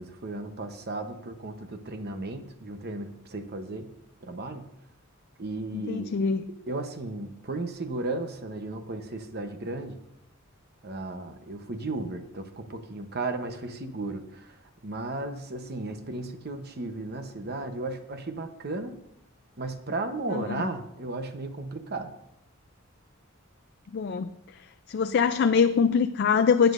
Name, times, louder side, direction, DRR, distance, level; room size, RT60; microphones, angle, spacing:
voice 1, 0.0-3.9 4.2-4.7 5.4-6.1 6.5-10.0 10.8-14.6 14.8-19.0 19.6-22.1, right 2 dB, 50° right, 7 dB, 0.9 m, -35 dB
voice 2, 5.7-6.4 20.3-20.6 23.9-24.3 24.9-26.7, left 6 dB, 50° left, 9 dB, 0.3 m, -23 dB
16.0 x 9.1 x 2.6 m, 0.79 s
head